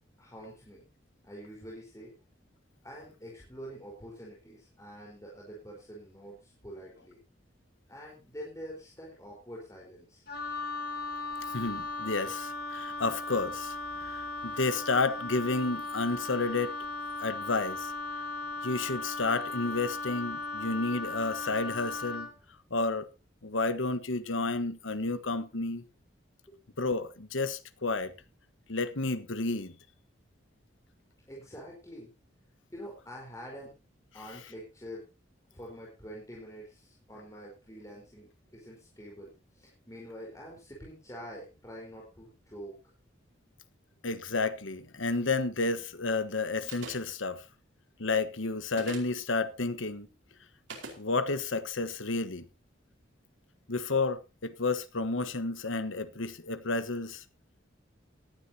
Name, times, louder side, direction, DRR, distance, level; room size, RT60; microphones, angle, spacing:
voice 1, 0.2-0.9 1.2-2.1 2.8-7.2 7.9-10.2 26.5-26.6 31.3-32.1 32.7-33.7 34.1-35.1 35.5-42.9, equal, 15° left, 4.5 m, -46 dB
Wind instrument woodwind instrument, 10.3-22.4, left 3 dB, 50° left, 2.6 m, -37 dB
voice 2, 11.5-16.8 17.2-17.9 18.6-22.3 22.7-23.1 23.4-25.8 26.8-28.1 28.7-29.7 44.0-47.4 48.0-50.1 51.0-52.4 53.7-57.2, left 3 dB, 85° left, 1.3 m, -31 dB
sound 1, 46.7-47.2 48.7-49.2 50.7-51.0, right 3 dB, 80° right, 4.7 m, -42 dB
18.0 x 11.5 x 2.9 m
head